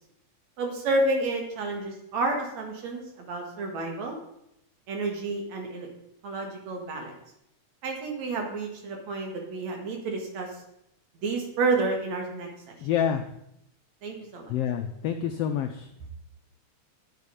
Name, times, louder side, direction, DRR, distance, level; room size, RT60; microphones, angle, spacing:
voice 1, 0.6-4.2 4.9-5.9 6.2-7.1 7.8-10.5 11.2-12.8 14.0-14.5, right 2 dB, 65° right, 2 dB, 3.0 m, -30 dB
voice 2, 12.8-13.2 14.5-15.9, left 9 dB, 90° left, 6 dB, 1.3 m, -27 dB
9.1 x 8.3 x 5.2 m, 0.79 s
omnidirectional pair, 3.5 m